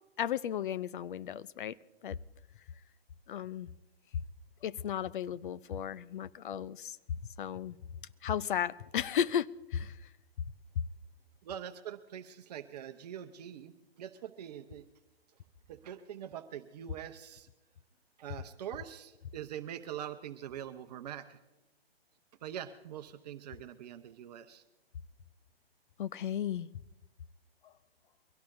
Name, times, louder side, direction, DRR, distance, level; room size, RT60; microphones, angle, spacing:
voice 1, 0.2-1.8 2.0-2.2 3.3-3.7 4.6-7.0 7.4-7.8 8.2-10.0 26.0-26.7 27.6-27.7, left 9 dB, 55° left, 0.6 m, -34 dB
voice 2, 11.4-14.9 15.7-17.5 18.2-21.4 22.4-24.6, right 10 dB, 40° right, 0.9 m, -44 dB
23.0 x 17.0 x 2.6 m
hypercardioid pair, 135°, 31 cm